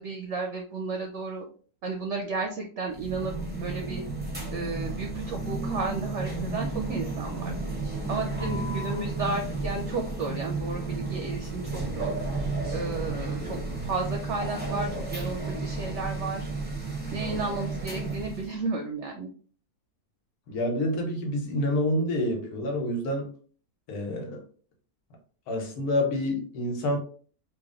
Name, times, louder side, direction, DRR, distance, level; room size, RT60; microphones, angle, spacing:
voice 1, 0.0-1.4 1.8-4.0 4.5-7.5 8.1-12.1 12.7-16.5 17.1-19.3, right 3 dB, 65° right, 3 dB, 0.7 m, -33 dB
sound 1, 2.9-18.5, right 3 dB, 10° right, 0.5 m, -32 dB
voice 2, 8.4-8.7 17.1-17.4 20.5-23.3 23.9-24.4 25.5-27.0, left 1 dB, 85° left, 2 dB, 1.5 m, -28 dB
3.2 x 2.5 x 3.6 m, 0.43 s
omnidirectional pair, 1.6 m